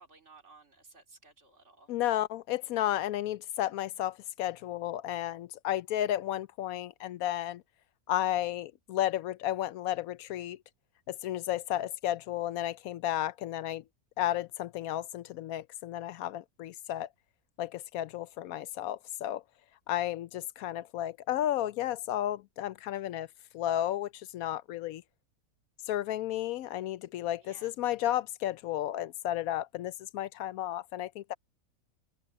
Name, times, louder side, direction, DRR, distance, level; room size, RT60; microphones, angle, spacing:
voice 1, 0.0-1.9 27.4-27.7, right 3 dB, 50° right, 3.2 m, -57 dB
voice 2, 1.9-7.6 8.1-10.6 11.1-13.8 14.2-17.1 17.6-19.4 19.9-23.3 23.5-25.0 25.8-31.3, left 13 dB, 80° left, 1.0 m, -33 dB
omnidirectional pair, 1.5 m